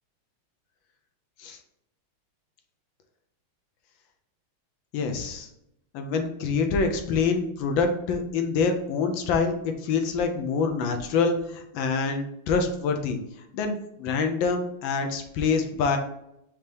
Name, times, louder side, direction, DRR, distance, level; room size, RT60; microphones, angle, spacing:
voice 1, 4.9-5.5 5.9-13.2 13.5-16.0, left 5 dB, 75° left, 5 dB, 1.3 m, -26 dB
5.3 x 2.9 x 3.3 m, 0.79 s
omnidirectional pair, 2.3 m